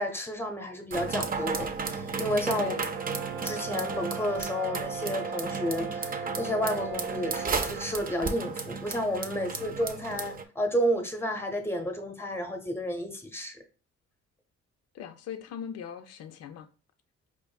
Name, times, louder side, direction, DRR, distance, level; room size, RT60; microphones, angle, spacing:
voice 1, 0.0-2.8 3.4-13.6, equal, 10° left, 0.8 m, -31 dB
sound 1, 0.9-10.4, right 4 dB, 30° right, 0.4 m, -34 dB
voice 2, 2.5-3.0 14.9-16.7, left 8 dB, 55° left, 0.5 m, -40 dB
Brass instrument, 2.9-7.8, right 5 dB, 75° right, 0.8 m, -37 dB
5.0 x 2.5 x 2.2 m
cardioid pair, 90°, 30 cm